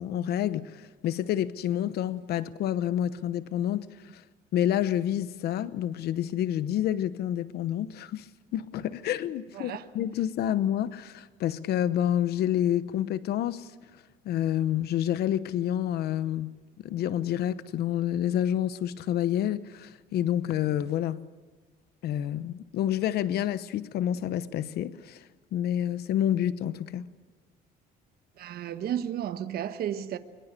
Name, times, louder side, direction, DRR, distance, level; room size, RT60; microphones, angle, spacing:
voice 1, 0.0-3.9 4.1-4.2 4.5-13.7 14.2-16.6 16.8-21.3 22.0-25.2 25.5-27.1, left 11 dB, 70° left, 1.0 m, -28 dB
voice 2, 9.5-9.8 28.4-30.2, right 10 dB, 65° right, 1.3 m, -33 dB
24.0 x 23.0 x 6.8 m
cardioid pair, 110°, 17 cm